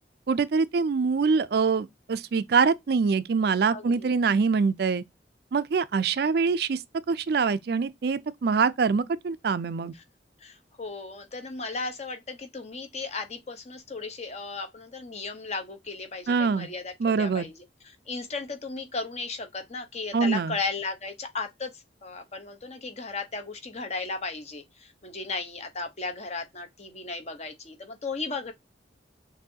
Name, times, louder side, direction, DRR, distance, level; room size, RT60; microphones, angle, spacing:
voice 1, 0.3-5.0 5.5-6.8 7.1-9.9 16.3-16.7 17.0-17.5 20.1-20.6, right 5 dB, 60° right, 0.4 m, -24 dB
voice 2, 3.7-4.1 9.9-10.0 10.4-17.5 17.8-28.5, left 3 dB, 40° left, 0.9 m, -35 dB
6.1 x 2.6 x 2.7 m
head